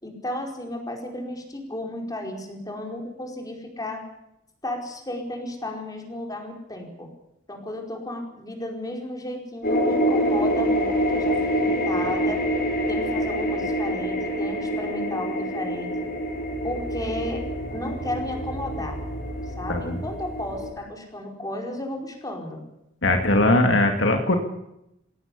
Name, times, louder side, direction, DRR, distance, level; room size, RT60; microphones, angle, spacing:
voice 1, 0.0-4.0 4.6-7.1 7.5-12.4 12.9-15.9 16.6-19.0 19.5-22.6, left 1 dB, 20° left, 2 dB, 4.7 m, -33 dB
sound 1, 9.6-20.7, equal, 50° left, 6.1 m, -26 dB
voice 2, 23.0-24.3, left 2 dB, 65° left, 4 dB, 2.3 m, -20 dB
21.5 x 17.5 x 8.4 m, 0.84 s
head